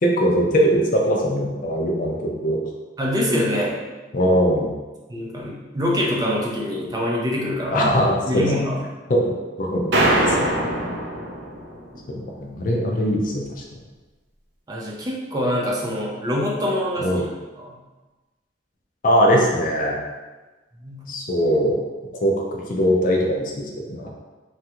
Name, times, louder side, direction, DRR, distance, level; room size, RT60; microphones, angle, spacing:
voice 1, 0.0-2.6 4.1-4.7 7.7-8.4 9.1-10.5 10.8-10.9 12.1-13.5 13.7-13.8 17.0-17.2 19.0-20.0 21.1-21.8 22.1-24.1, equal, 45° left, 0 dB, 0.4 m, -21 dB
voice 2, 3.0-3.8 5.1-7.9 8.2-8.8 14.7-17.3 17.6-17.8 20.8-21.1, equal, 20° right, -3 dB, 0.5 m, -25 dB
sound 1, 9.9-11.9, right 1 dB, 70° right, 0.5 m, -22 dB
3.2 x 2.4 x 2.9 m, 1.2 s
head